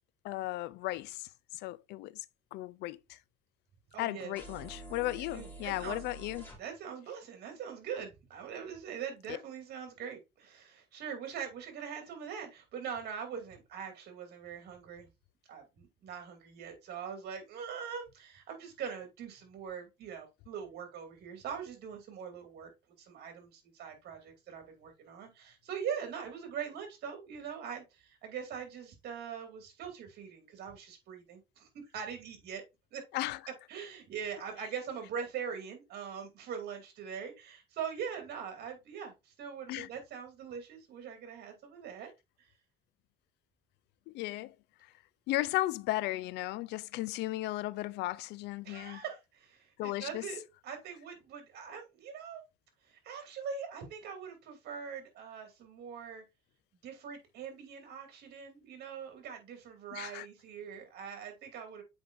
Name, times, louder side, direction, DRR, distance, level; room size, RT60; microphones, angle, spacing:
voice 1, 0.2-1.3 1.5-2.2 2.5-3.2 4.0-6.5 33.1-33.4 39.7-39.9 44.1-44.5 45.3-49.0 49.8-50.2 59.9-60.3, left 17 dB, 80° left, 0.4 m, -35 dB
voice 2, 3.9-4.4 5.2-6.0 6.6-15.1 15.5-22.7 23.0-32.6 32.9-33.0 33.7-42.1 48.6-52.4 52.9-56.2 56.8-61.8, right 7 dB, 70° right, 2.6 m, -42 dB
sound 1, 4.4-6.6, right 1 dB, 10° left, 2.8 m, -47 dB
7.9 x 5.0 x 2.5 m
cardioid pair, 110°, 17 cm